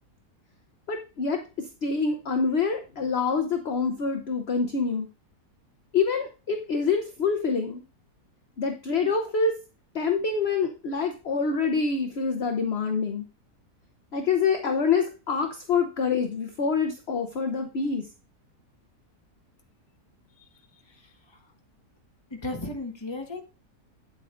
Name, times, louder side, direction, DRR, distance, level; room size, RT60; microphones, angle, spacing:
voice 1, 0.9-5.1 5.9-7.8 8.6-9.6 9.9-13.2 14.1-18.1, left 5 dB, 50° left, 5 dB, 0.9 m, -26 dB
voice 2, 20.8-21.4 22.3-23.4, left 2 dB, 20° left, 2 dB, 1.3 m, -36 dB
9.0 x 7.7 x 2.5 m, 0.33 s
omnidirectional pair, 1.7 m